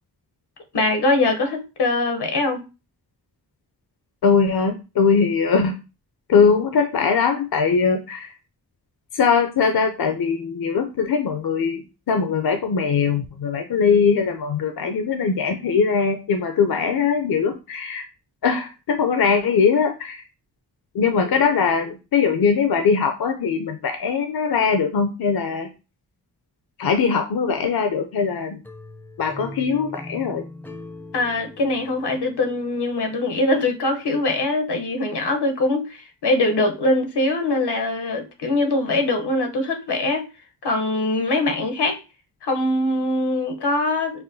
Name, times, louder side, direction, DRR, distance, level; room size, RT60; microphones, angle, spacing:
voice 1, 0.7-2.6 31.1-40.3 40.6-42.0 42.4-44.2, left 2 dB, 80° left, 0.9 m, -22 dB
voice 2, 4.2-5.7 6.3-8.3 9.1-18.1 18.4-20.2 20.9-25.7 26.8-28.6 29.2-30.5, left 5 dB, 65° left, 0.6 m, -21 dB
sound 1, 28.6-33.5, left 1 dB, 5° left, 0.4 m, -41 dB
5.6 x 2.2 x 2.6 m
wide cardioid pair, 70°, 39 cm